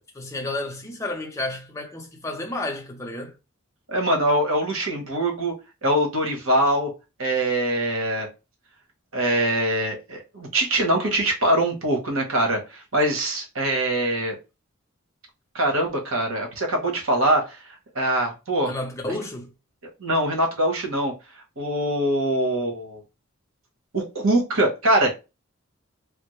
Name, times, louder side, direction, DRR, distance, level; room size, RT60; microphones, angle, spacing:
voice 1, 0.0-3.3 18.7-19.5, left 2 dB, 15° left, 0.6 m, -31 dB
voice 2, 3.9-5.5 5.8-6.9 7.2-8.3 9.1-14.3 15.5-17.6 17.9-18.7 20.0-21.1 21.6-23.0 23.9-25.1, right 1 dB, 70° right, 1.2 m, -23 dB
3.4 x 2.0 x 3.1 m
head